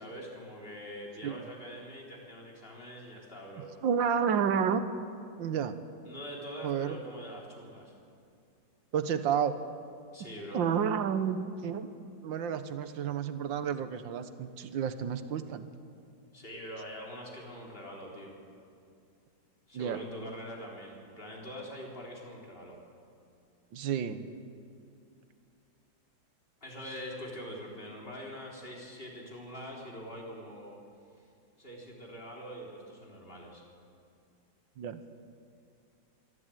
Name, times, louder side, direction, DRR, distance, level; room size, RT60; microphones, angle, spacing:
voice 1, 0.0-3.7 6.0-7.9 10.1-10.7 16.3-18.4 19.7-22.8 26.6-30.8 31.2-31.3 31.6-33.6, equal, 30° left, -2 dB, 3.9 m, -44 dB
voice 2, 3.8-4.8 5.4-5.8 6.6-7.0 8.9-9.6 10.5-11.9 12.2-15.7 19.7-20.0 23.7-24.3 34.8-35.0, right 7 dB, 75° right, 11 dB, 1.7 m, -30 dB
25.0 x 12.5 x 9.1 m, 2.4 s
omnidirectional pair, 2.1 m